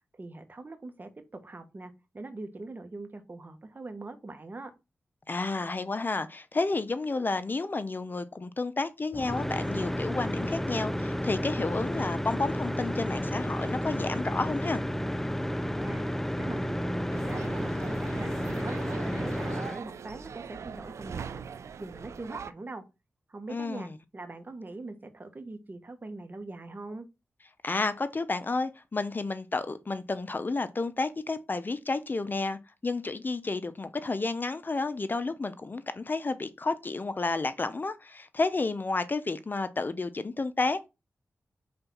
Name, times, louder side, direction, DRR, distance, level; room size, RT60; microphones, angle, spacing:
voice 1, 0.2-1.1 1.4-4.7 15.6-16.0 16.4-18.7 19.0-21.5 21.8-22.8 23.3-27.1, right 2 dB, 40° right, 1.5 m, -42 dB
voice 2, 5.3-14.8 23.5-23.9 27.6-40.9, left 3 dB, 40° left, 0.7 m, -31 dB
sound 1, 9.1-19.8, equal, 5° left, 0.5 m, -31 dB
sound 2, 17.1-22.5, right 6 dB, 80° right, 0.5 m, -41 dB
5.3 x 3.9 x 6.0 m
cardioid pair, 55°, 5 cm